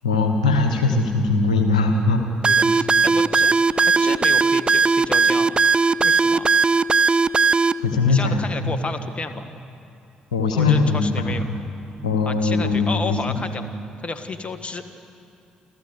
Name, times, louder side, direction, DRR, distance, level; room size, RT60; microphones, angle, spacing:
voice 1, 0.0-2.2 7.8-8.7 10.3-11.0 12.0-13.4, left 3 dB, 85° left, 5 dB, 1.3 m, -20 dB
voice 2, 2.4-5.6 6.0-6.5 8.1-9.6 10.5-11.4 12.2-13.7 14.0-14.8, left 3 dB, 30° left, 8 dB, 1.7 m, -32 dB
sound 1, 2.4-7.7, right 4 dB, 25° right, 0.6 m, -17 dB
28.5 x 14.5 x 8.2 m, 2.6 s
figure-of-eight pair, 45°, 4 cm